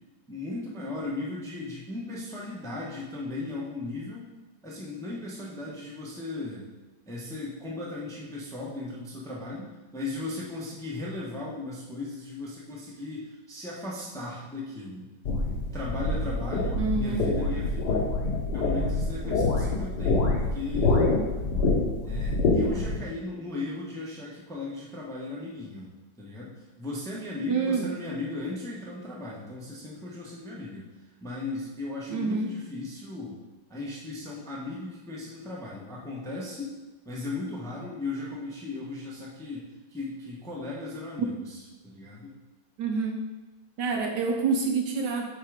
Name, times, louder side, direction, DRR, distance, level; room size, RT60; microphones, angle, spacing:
voice 1, 0.3-4.3 4.6-6.7 7.1-15.1 15.7-18.0 18.3-21.0 22.0-25.9 26.2-30.8 31.2-33.4 33.7-36.8 37.0-42.3, left 2 dB, ahead, -4 dB, 0.8 m, -37 dB
sound 1, 15.2-23.0, left 3 dB, 60° left, 1.5 m, -26 dB
voice 2, 16.8-17.3 27.5-27.9 32.1-32.5 42.8-43.2 43.8-45.3, right 4 dB, 70° right, 2 dB, 1.2 m, -27 dB
5.7 x 4.5 x 5.0 m, 1.2 s
omnidirectional pair, 2.1 m